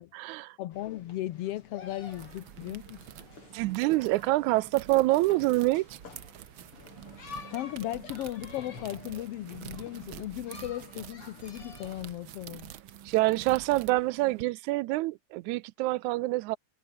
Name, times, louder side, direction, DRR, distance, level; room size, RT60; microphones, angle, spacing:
voice 1, 0.0-0.6 3.5-5.9 13.1-16.6, right 19 dB, 90° right, 2.0 m, -26 dB
voice 2, 0.6-3.1 7.5-12.7, left 14 dB, 70° left, 1.6 m, -36 dB
sound 1, 0.7-12.1, left 5 dB, 50° left, 4.4 m, -50 dB
sound 2, 1.8-14.4, right 11 dB, 60° right, 1.4 m, -48 dB
omnidirectional pair, 3.3 m